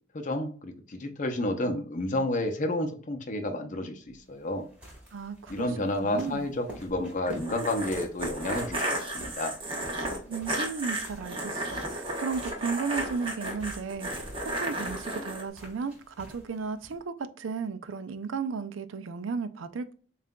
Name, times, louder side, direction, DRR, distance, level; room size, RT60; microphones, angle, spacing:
voice 1, 0.1-4.7 5.5-8.9 9.1-9.5, left 1 dB, 40° left, 0.6 m, -30 dB
sound 1, 4.0-17.0, equal, 5° right, 1.5 m, -48 dB
voice 2, 5.1-5.7 6.0-6.5 10.3-14.3 14.6-19.9, right 5 dB, 90° right, 0.4 m, -34 dB
sound 2, 7.3-15.4, right 1 dB, 30° right, 0.9 m, -33 dB
7.2 x 2.5 x 2.2 m
head